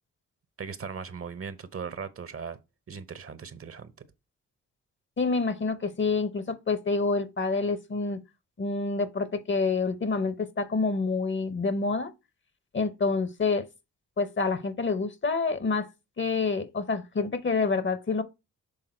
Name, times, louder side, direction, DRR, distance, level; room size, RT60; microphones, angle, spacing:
voice 1, 0.6-2.6 2.9-3.9, right 6 dB, 45° right, 0.8 m, -38 dB
voice 2, 5.2-8.2 8.6-12.1 12.7-13.6 14.2-15.9 16.2-18.2, left 4 dB, 35° left, 0.9 m, -27 dB
6.6 x 3.5 x 4.3 m
supercardioid pair, 55°, 32 cm